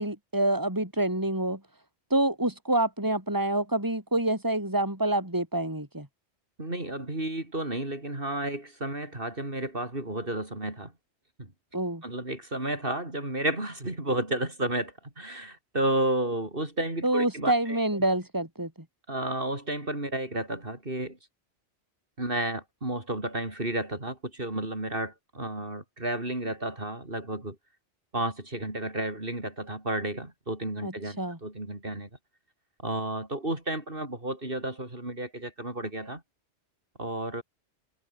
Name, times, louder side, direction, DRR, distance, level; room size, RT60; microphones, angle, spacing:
voice 1, 0.0-1.6 2.1-6.1 11.7-12.0 17.0-18.7 30.8-30.9 31.2-31.4, right 1 dB, 15° right, 4.4 m, -27 dB
voice 2, 6.6-10.9 11.4-11.5 12.0-18.0 19.1-21.2 22.2-27.6 28.1-32.1 32.8-36.2 37.0-37.4, right 1 dB, 55° right, 5.1 m, -32 dB
omnidirectional pair, 1.1 m